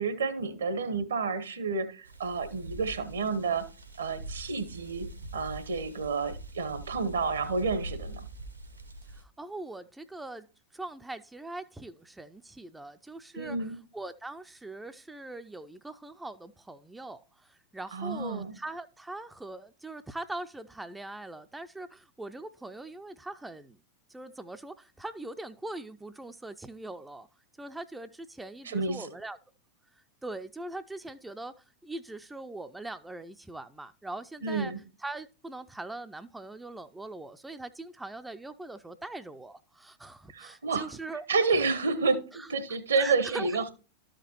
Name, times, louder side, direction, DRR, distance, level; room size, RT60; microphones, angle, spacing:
voice 1, 0.0-3.6 4.0-8.2 13.3-13.7 17.9-18.5 28.6-29.1 34.4-34.8 40.3-40.9 41.3-43.7, right 4 dB, 70° right, 1.1 m, -30 dB
sound 1, 2.0-9.2, right 2 dB, 85° right, 1.4 m, -43 dB
voice 2, 9.1-10.5 10.7-23.8 24.1-27.3 27.6-29.4 30.2-34.7 35.0-41.3 41.5-41.6 42.3-42.5 43.0-43.6, right 2 dB, 5° right, 0.4 m, -41 dB
13.0 x 5.1 x 3.0 m
figure-of-eight pair, 90°, 0 cm